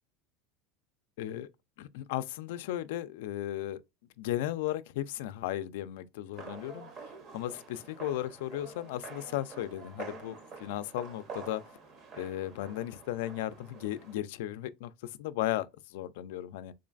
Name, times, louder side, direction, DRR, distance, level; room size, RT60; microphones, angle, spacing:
voice 1, 1.2-1.5 1.8-3.8 4.2-6.9 7.3-11.6 12.2-16.7, left 13 dB, 75° left, 0.3 m, -35 dB
sound 1, 6.3-14.2, right 4 dB, 35° right, 0.8 m, -47 dB
3.7 x 3.1 x 2.4 m
supercardioid pair, 160°, 0 cm